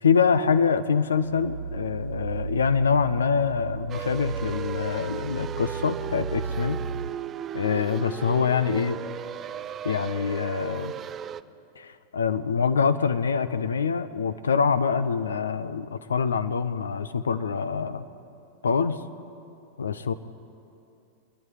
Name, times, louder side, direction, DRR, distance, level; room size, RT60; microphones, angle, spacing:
voice 1, 0.0-6.8 7.5-9.0 9.8-10.9 11.8-18.0 18.6-19.0 19.8-20.1, left 6 dB, 70° left, 12 dB, 0.7 m, -25 dB
sound 1, 1.1-7.1, right 5 dB, 60° right, 0.8 m, -34 dB
sound 2, 3.9-11.4, right 9 dB, 25° right, 0.4 m, -36 dB
25.5 x 11.0 x 9.8 m, 2.8 s
figure-of-eight pair, 90°, 0 cm